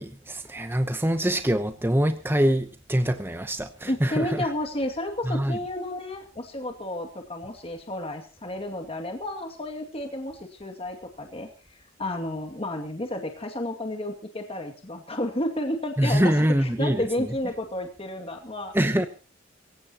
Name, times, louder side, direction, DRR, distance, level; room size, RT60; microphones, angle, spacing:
voice 1, 0.0-4.5 5.2-5.6 16.0-17.3 18.7-19.1, right 1 dB, 10° right, 0.9 m, -24 dB
voice 2, 3.9-18.7, left 1 dB, 30° left, 2.3 m, -32 dB
25.0 x 15.5 x 3.0 m
head